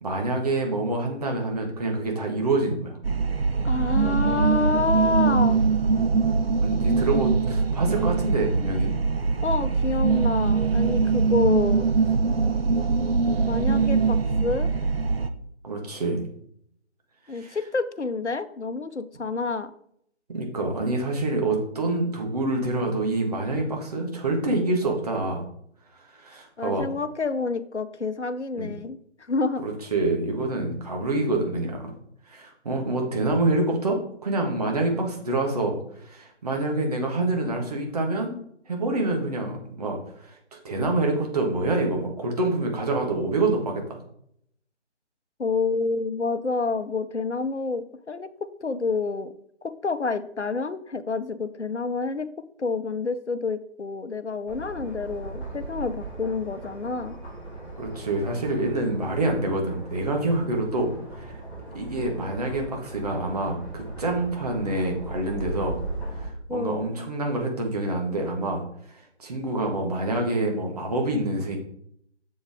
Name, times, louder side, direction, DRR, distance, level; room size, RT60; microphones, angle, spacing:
voice 1, 0.0-3.0 6.6-8.9 15.6-16.2 17.3-17.6 20.3-25.4 25.9-26.9 28.6-28.7 29.6-31.9 32.3-38.3 38.7-40.4 40.6-44.0 57.8-61.4 61.7-65.8 66.1-68.6 69.2-71.6, right 2 dB, 35° right, 1 dB, 1.6 m, -26 dB
sound 1, 3.0-15.3, right 4 dB, 60° right, 0.7 m, -22 dB
voice 2, 3.6-5.6 9.4-11.9 13.5-14.7 17.3-19.7 26.6-29.6 45.4-49.3 49.6-52.3 52.6-57.1 66.5-66.8, left 4 dB, 80° left, 12 dB, 0.8 m, -28 dB
sound 2, 54.5-66.2, right 2 dB, ahead, 3.4 m, -38 dB
7.3 x 7.2 x 3.6 m, 0.68 s
figure-of-eight pair, 150°, 34 cm